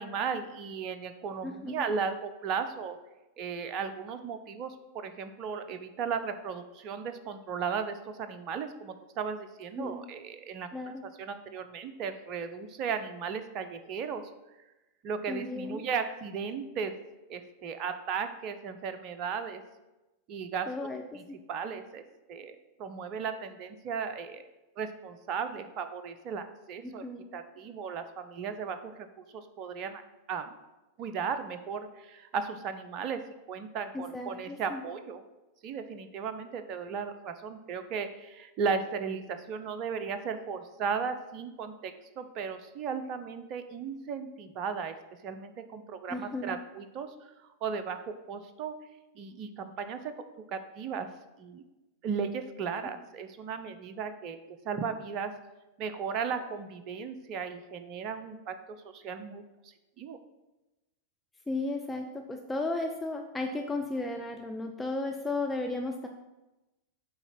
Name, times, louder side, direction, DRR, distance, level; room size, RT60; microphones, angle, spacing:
voice 1, 0.0-3.0 3.4-10.7 11.2-14.3 15.0-16.9 17.3-19.6 20.3-20.7 21.1-21.2 21.5-22.0 22.3-24.4 24.8-27.0 27.3-29.1 29.3-30.0 30.3-30.5 31.0-33.2 33.5-35.2 35.6-45.0 45.2-47.3 47.6-48.7 49.2-50.1 50.5-51.1 51.4-51.6 52.0-54.4 54.6-55.3 55.8-59.4 60.0-60.2, right 6 dB, 40° right, 10 dB, 0.6 m, -36 dB
voice 2, 1.4-1.9 9.8-10.0 10.7-11.0 15.3-15.8 20.7-21.4 26.8-27.3 33.9-34.8 46.1-46.6 61.5-66.1, left 2 dB, 10° left, 3 dB, 0.5 m, -35 dB
7.9 x 3.0 x 5.8 m, 1.0 s
figure-of-eight pair, 90°, 0 cm